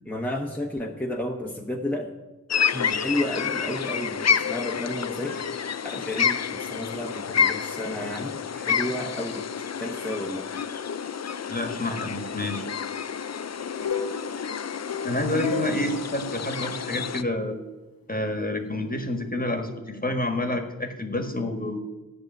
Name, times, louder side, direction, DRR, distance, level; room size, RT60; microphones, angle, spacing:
voice 1, 0.1-2.1 2.7-5.4 5.8-9.4 9.8-10.5, left 1 dB, 5° left, 0 dB, 1.1 m, -32 dB
sound 1, 2.5-17.2, left 7 dB, 50° left, 0.5 m, -29 dB
voice 2, 11.5-12.7 15.0-17.6 18.1-21.8, left 1 dB, 25° left, 5 dB, 1.5 m, -28 dB
sound 2, 13.7-17.1, left 5 dB, 75° left, 1.0 m, -34 dB
13.5 x 6.6 x 9.1 m, 1.2 s
wide cardioid pair, 90°, 35 cm